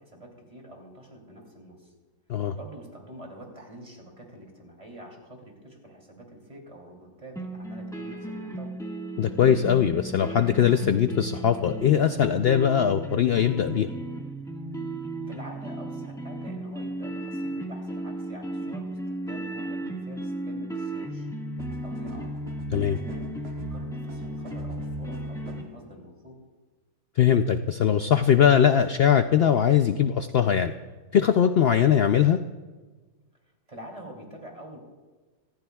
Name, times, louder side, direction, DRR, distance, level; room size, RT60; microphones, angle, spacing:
voice 1, 0.0-1.9 2.5-8.7 15.3-21.3 21.8-22.3 22.9-26.4 33.7-34.8, right 1 dB, 25° right, 0 dB, 3.0 m, -46 dB
sound 1, 7.4-25.6, right 1 dB, ahead, 1.5 m, -35 dB
voice 2, 9.2-13.9 22.7-23.0 27.2-30.7 31.1-32.4, left 9 dB, 90° left, 8 dB, 0.5 m, -21 dB
sound 2, 21.6-25.8, right 9 dB, 45° right, 1.2 m, -42 dB
26.5 x 14.0 x 2.3 m, 1.3 s
omnidirectional pair, 1.6 m